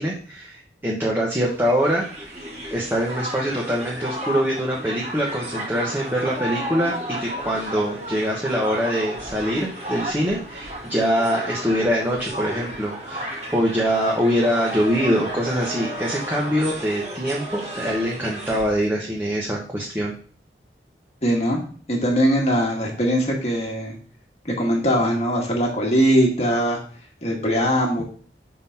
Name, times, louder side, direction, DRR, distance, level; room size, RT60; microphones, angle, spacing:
voice 1, 0.0-2.3 2.7-20.1, equal, 10° right, -3 dB, 1.1 m, -24 dB
Crowd, 1.5-18.8, right 1 dB, 40° right, 1.9 m, -33 dB
voice 2, 21.2-21.6 21.9-23.9 24.4-26.8 27.2-28.0, equal, 35° left, -1 dB, 1.6 m, -21 dB
5.9 x 3.8 x 5.7 m, 0.43 s
head